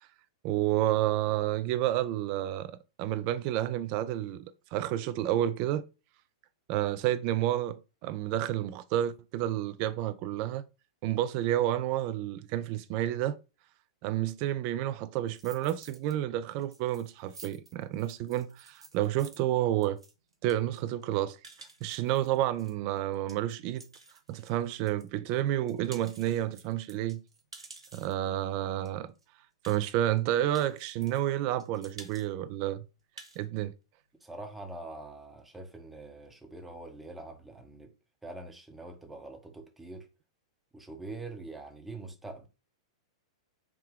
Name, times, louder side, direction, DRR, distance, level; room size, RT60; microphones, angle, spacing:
voice 1, 0.4-2.7 3.0-5.9 6.7-10.6 11.0-13.4 14.0-20.0 20.4-21.4 21.8-23.8 24.3-27.2 27.9-29.1 29.7-32.8 33.4-33.7, right 13 dB, 40° right, 0.3 m, -30 dB
sound 1, 15.3-16.1 16.5-25.1 25.5-28.3 28.9-29.0 29.2-29.3 29.6-30.2 30.5-31.3 31.6-32.3 32.6-32.7 33.0-33.4, right 3 dB, 80° right, 0.7 m, -52 dB
voice 2, 34.2-37.9 38.2-40.1 40.7-42.5, right 2 dB, 5° right, 0.7 m, -44 dB
3.6 x 2.1 x 3.5 m
figure-of-eight pair, 100°, 3 cm